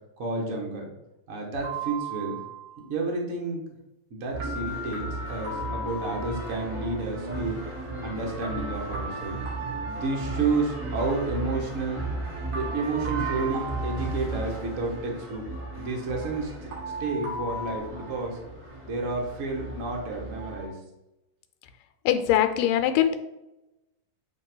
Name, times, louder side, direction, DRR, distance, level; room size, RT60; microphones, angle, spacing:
voice 1, 0.2-0.9 1.3-2.4 2.8-3.6 4.1-7.6 8.0-9.4 9.8-12.0 12.5-15.4 15.8-16.7 17.0-18.4 18.8-20.8, right 3 dB, 80° right, -1 dB, 0.7 m, -30 dB
sound 1, 1.6-2.8 4.4-6.7 8.4-10.7 12.5-14.9 16.7-17.8, right 2 dB, 60° right, 3.0 m, -37 dB
sound 2, 4.3-20.7, right 2 dB, 30° right, 2.2 m, -36 dB
voice 2, 22.1-23.2, left 11 dB, 80° left, 8 dB, 2.2 m, -22 dB
8.7 x 3.3 x 4.6 m, 0.93 s
omnidirectional pair, 3.9 m